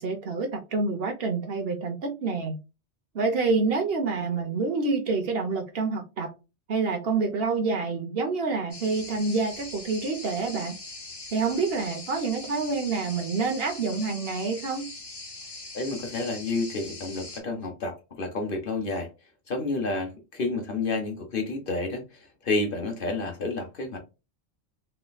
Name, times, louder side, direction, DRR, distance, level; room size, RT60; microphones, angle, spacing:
voice 1, 0.0-2.6 3.1-6.3 6.7-10.8 11.3-14.9, right 4 dB, 60° right, 1.0 m, -27 dB
sound 1, 8.7-17.4, left 2 dB, 25° left, 0.7 m, -42 dB
voice 2, 15.7-19.1 19.5-24.0, left 3 dB, 50° left, 1.1 m, -30 dB
3.2 x 3.0 x 2.2 m
omnidirectional pair, 1.2 m